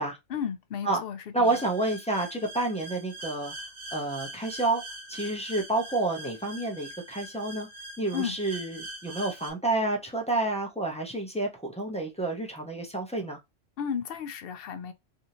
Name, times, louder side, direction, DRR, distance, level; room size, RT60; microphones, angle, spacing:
voice 1, 0.3-1.6 8.1-8.4 13.8-14.9, left 7 dB, 60° left, 0.7 m, -34 dB
voice 2, 1.3-3.5 3.9-4.8 5.1-7.7 8.0-13.4, right 2 dB, 10° left, 0.5 m, -29 dB
sound 1, 1.4-9.5, right 1 dB, 75° right, 1.6 m, -43 dB
3.4 x 2.6 x 2.9 m
omnidirectional pair, 1.3 m